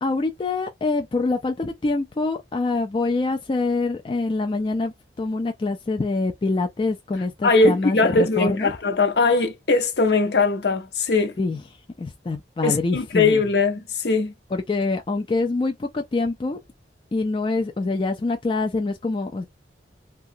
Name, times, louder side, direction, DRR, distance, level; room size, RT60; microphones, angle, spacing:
voice 1, 0.0-8.7 11.4-11.6 12.0-13.4 14.5-16.6 17.1-19.5, left 3 dB, 30° left, 0.3 m, -25 dB
voice 2, 7.4-11.3 12.6-14.3, left 3 dB, 65° left, 0.7 m, -20 dB
2.8 x 2.3 x 2.5 m
head